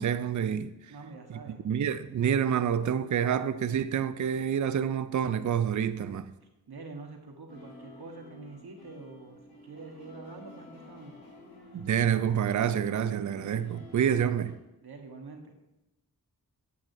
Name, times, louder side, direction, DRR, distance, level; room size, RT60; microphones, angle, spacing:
voice 1, 0.0-0.7 1.6-6.3 11.7-14.6, right 8 dB, 50° right, 0.5 m, -28 dB
voice 2, 0.9-1.6 6.7-11.2 11.7-11.8 14.8-15.5, right 3 dB, 75° right, 1.2 m, -46 dB
sound 1, 7.5-14.5, left 2 dB, 80° left, 1.6 m, -51 dB
8.4 x 7.5 x 2.7 m
cardioid pair, 60°, 38 cm